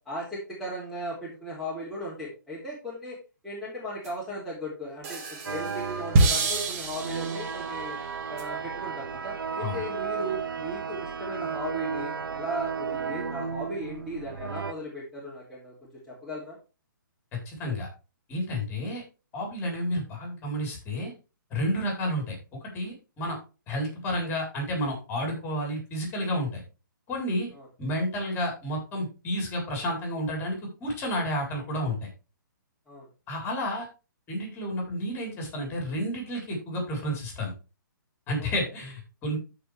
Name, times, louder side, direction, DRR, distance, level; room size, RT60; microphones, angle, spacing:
voice 1, 0.0-3.2 3.4-8.0 8.3-15.7 16.1-16.6 27.5-27.7 32.9-33.1 38.4-38.5, equal, ahead, -9 dB, 3.1 m, -37 dB
sound 1, 4.0-4.1 5.0-7.8 8.4-8.5, right 3 dB, 40° right, 2.3 m, -26 dB
sound 2, 5.5-14.7, right 6 dB, 85° right, 0.8 m, -34 dB
voice 2, 17.5-17.9 18.3-19.0 19.3-21.1 21.5-22.4 22.7-23.4 23.7-26.6 27.1-27.5 27.8-32.1 33.3-33.9 34.3-37.5 38.3-39.4, equal, 20° left, 0 dB, 4.2 m, -31 dB
13.5 x 5.0 x 3.4 m, 0.32 s
hypercardioid pair, 145°, 11 cm